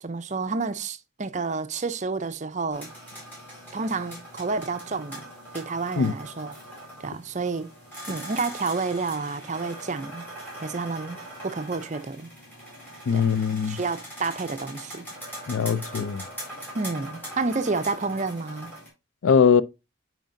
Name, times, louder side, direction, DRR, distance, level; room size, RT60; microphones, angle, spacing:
voice 1, 0.0-2.9 3.7-5.3 5.5-6.5 7.0-7.7 8.1-10.3 10.6-12.3 13.1-13.3 13.6-15.1 16.7-18.7, right 4 dB, 35° right, 0.5 m, -30 dB
sound 1, 2.7-18.9, right 1 dB, 10° left, 4.3 m, -41 dB
voice 2, 13.1-13.8 15.5-16.2 19.2-19.6, left 6 dB, 80° left, 0.4 m, -21 dB
9.0 x 5.1 x 2.6 m
head